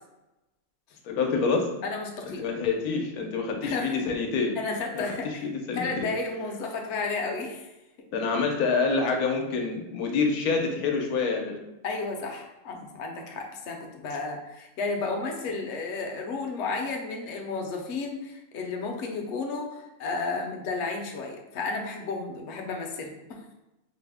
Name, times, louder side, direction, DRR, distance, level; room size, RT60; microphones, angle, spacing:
voice 1, 1.0-1.7 2.2-4.6 4.9-6.1 8.1-11.6, left 4 dB, 85° left, 2 dB, 1.1 m, -27 dB
voice 2, 1.8-2.4 3.6-4.0 4.6-5.4 5.7-7.7 11.8-23.4, left 3 dB, 60° left, 2 dB, 0.8 m, -32 dB
4.8 x 2.0 x 3.4 m, 0.98 s
omnidirectional pair, 1.6 m